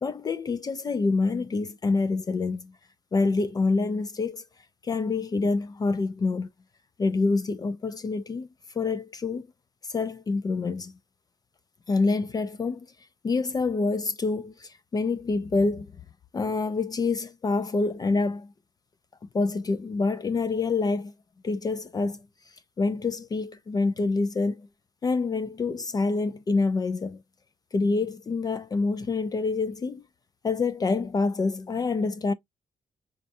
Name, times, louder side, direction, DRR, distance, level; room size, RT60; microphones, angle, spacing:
voice 1, 0.0-2.7 3.1-4.4 4.8-6.5 7.0-8.5 8.7-9.5 9.9-10.9 11.9-12.9 13.2-15.9 16.3-18.5 19.3-21.1 21.4-22.2 22.8-24.7 25.0-27.2 27.7-30.0 30.4-32.3, left 3 dB, 30° left, 0.4 m, -26 dB
5.3 x 2.3 x 2.6 m
wide cardioid pair, 180°, 14 cm